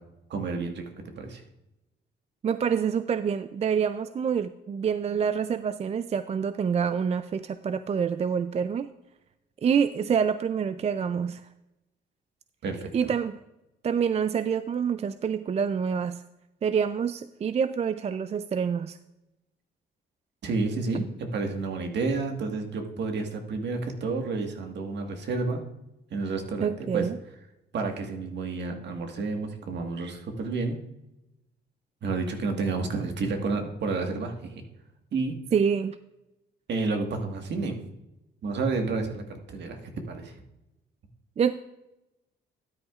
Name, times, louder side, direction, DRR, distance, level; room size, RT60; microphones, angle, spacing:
voice 1, 0.3-1.4 12.6-13.1 20.4-25.6 26.1-27.1 27.7-30.8 32.0-34.6 35.1-35.4 36.7-37.8 38.4-39.8 40.1-40.3, right 3 dB, 60° right, 4 dB, 1.6 m, -30 dB
voice 2, 2.4-8.9 9.6-11.4 12.9-13.4 13.8-16.2 16.6-19.0 26.6-27.2 35.5-36.0 41.4-41.5, right 7 dB, 35° right, 12 dB, 0.4 m, -27 dB
12.5 x 9.6 x 2.4 m, 0.93 s
cardioid pair, 90°, 20 cm